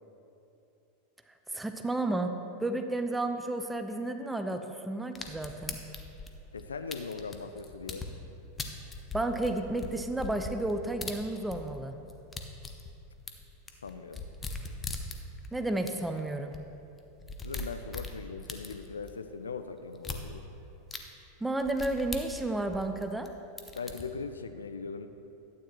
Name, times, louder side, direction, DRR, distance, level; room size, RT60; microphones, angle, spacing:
voice 1, 1.5-2.3 2.6-5.8 9.1-12.0 15.5-16.5 21.4-23.3, right 2 dB, 5° right, 6 dB, 0.5 m, -32 dB
sound 1, 5.1-8.1 8.6-11.8 12.1-15.5 15.9-16.0 16.2-16.3 16.5-16.6 17.0-19.1 19.9-20.2 20.9-21.0 21.6-23.3 23.6-24.0, left 3 dB, 20° left, 0.9 m, -40 dB
voice 2, 6.5-8.1 13.8-14.2 17.4-20.5 23.8-25.1, left 5 dB, 80° left, 9 dB, 0.4 m, -40 dB
12.0 x 9.1 x 3.0 m, 2.8 s
figure-of-eight pair, 90°, 0 cm